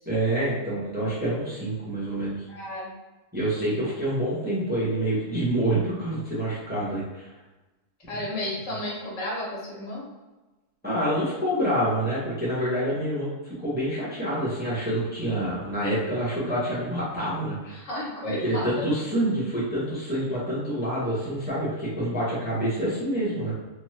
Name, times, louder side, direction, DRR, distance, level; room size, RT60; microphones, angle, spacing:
voice 1, 0.1-2.4 3.3-7.3 10.8-13.3 13.6-17.8 18.2-23.5, right 1 dB, 10° right, -9 dB, 0.8 m, -27 dB
voice 2, 2.5-2.9 8.1-10.0 17.7-18.7, left 1 dB, 70° left, -5 dB, 1.3 m, -32 dB
2.8 x 2.3 x 3.1 m, 1.1 s
omnidirectional pair, 1.4 m